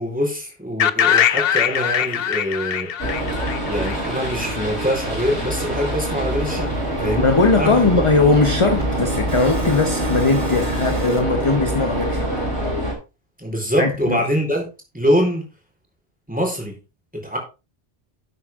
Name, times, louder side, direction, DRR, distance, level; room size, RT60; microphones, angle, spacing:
voice 1, 0.0-2.9 3.7-7.3 7.6-7.9 13.4-14.7 14.9-15.5 16.3-16.8 17.1-17.4, equal, 5° right, 4.1 m, -24 dB
sound 1, 0.8-4.7, left 8 dB, 65° left, 0.9 m, -21 dB
sound 2, 3.0-12.9, right 1 dB, 80° right, 5.6 m, -25 dB
sound 3, 3.9-4.0 4.4-4.5 4.8-5.0 5.3-11.2, right 2 dB, 35° right, 2.6 m, -33 dB
voice 2, 7.2-12.3 13.8-14.2, left 3 dB, 30° left, 1.0 m, -19 dB
11.5 x 8.1 x 3.7 m
omnidirectional pair, 1.1 m